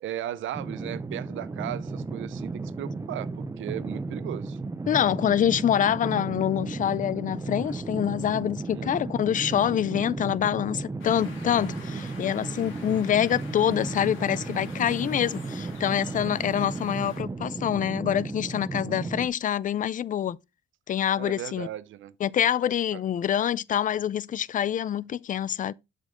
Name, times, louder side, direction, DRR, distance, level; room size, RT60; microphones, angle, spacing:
voice 1, 0.0-4.6 8.7-8.9 15.2-15.3 21.1-22.1 22.9-23.0, right 12 dB, 75° right, 0.7 m, -36 dB
sound 1, 0.5-19.3, right 3 dB, 15° right, 0.6 m, -34 dB
voice 2, 4.9-20.4 20.9-21.7 22.2-25.7, left 10 dB, 40° left, 0.4 m, -26 dB
sound 2, 11.0-17.2, left 5 dB, 80° left, 2.3 m, -47 dB
7.5 x 5.2 x 3.6 m
cardioid pair, 90°, 20 cm